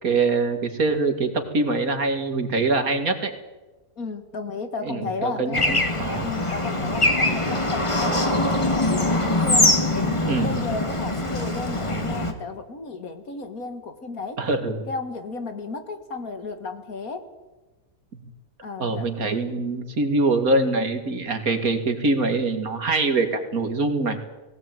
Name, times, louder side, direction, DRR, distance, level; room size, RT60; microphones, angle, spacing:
voice 1, 0.0-3.3 4.8-6.3 6.8-6.9 10.3-10.6 14.4-14.9 18.8-24.2, right 3 dB, 65° right, 7 dB, 2.6 m, -24 dB
voice 2, 4.0-5.6 6.2-14.4 14.9-17.2 18.6-19.1, left 4 dB, 65° left, 8 dB, 2.3 m, -33 dB
Bird / Traffic noise roadway noise, 5.5-12.3, left 2 dB, 20° left, 1.9 m, -23 dB
19.5 x 17.5 x 9.1 m, 1.1 s
omnidirectional pair, 1.7 m